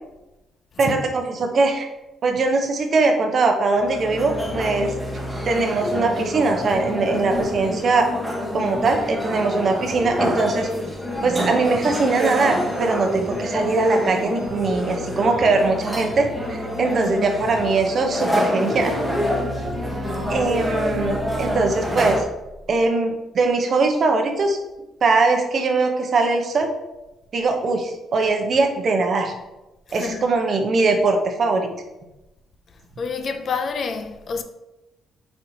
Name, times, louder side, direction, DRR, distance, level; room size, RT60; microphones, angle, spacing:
voice 1, 0.8-1.9 2.2-4.9 5.4-8.1 8.5-10.7 11.2-18.9 20.3-22.2 22.7-24.6 25.0-26.7 27.3-29.3 29.9-31.7, right 3 dB, 50° right, 0.7 m, -21 dB
sound 1, 3.8-22.2, equal, ahead, 1.0 m, -27 dB
voice 2, 17.0-17.3 20.6-20.7 29.9-30.3 33.0-34.4, left 5 dB, 50° left, 0.4 m, -29 dB
4.4 x 4.2 x 2.7 m
cardioid pair, 90°, 0 cm